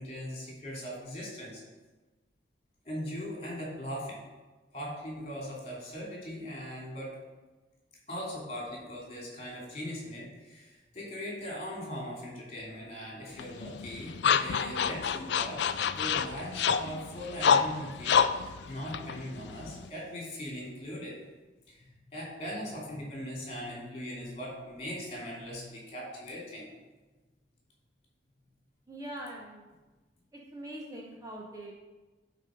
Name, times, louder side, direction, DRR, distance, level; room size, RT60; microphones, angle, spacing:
voice 1, 0.0-1.6 2.8-4.2 4.7-7.1 8.1-21.2 21.7-26.7, equal, 35° left, -3 dB, 2.9 m, -40 dB
sound 1, 13.4-19.9, left 7 dB, 60° left, 0.4 m, -28 dB
voice 2, 28.9-29.6 30.3-31.7, right 1 dB, 20° right, -2 dB, 0.9 m, -42 dB
11.0 x 4.2 x 5.2 m, 1.2 s
head